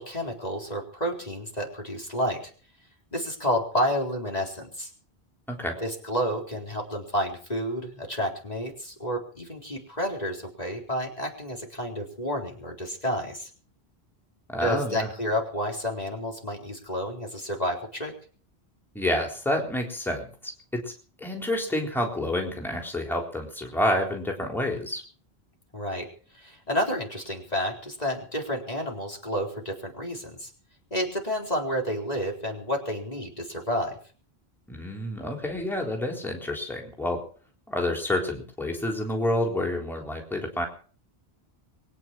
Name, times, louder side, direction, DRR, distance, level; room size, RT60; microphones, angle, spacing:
voice 1, 0.0-2.4 3.1-4.9 5.8-13.5 14.6-18.1 25.7-26.1 26.3-30.5 30.9-34.0, equal, 40° left, 0 dB, 4.2 m, -30 dB
voice 2, 5.5-5.8 14.5-15.1 18.9-20.9 21.2-25.0 34.7-37.2 37.7-40.6, left 1 dB, ahead, 0 dB, 3.8 m, -29 dB
23.0 x 9.8 x 6.2 m, 0.42 s
omnidirectional pair, 1.1 m